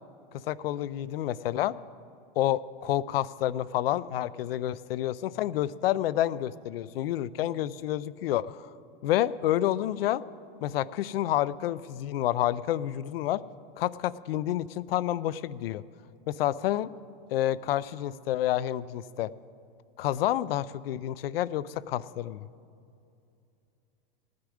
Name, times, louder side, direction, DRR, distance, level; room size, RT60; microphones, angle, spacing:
voice 1, 0.5-1.8 2.4-8.7 9.0-10.2 10.6-13.4 13.8-15.8 16.3-16.9 17.3-19.3 20.0-22.5, left 13 dB, 80° left, 18 dB, 0.5 m, -29 dB
16.5 x 9.5 x 5.0 m, 2.6 s
supercardioid pair, 165°, 29 cm